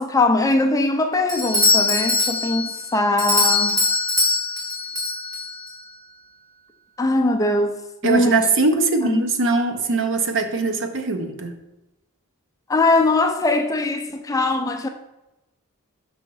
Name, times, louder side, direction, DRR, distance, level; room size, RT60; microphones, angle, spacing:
voice 1, 0.0-3.8 7.0-7.8 8.0-8.4 9.1-9.2 12.7-14.9, left 2 dB, 15° left, 0.4 m, -21 dB
Doorbell, 1.3-5.8, left 2 dB, 15° right, 1.5 m, -21 dB
voice 2, 8.0-11.6, right 3 dB, 55° right, 0.8 m, -21 dB
5.8 x 5.5 x 4.6 m
head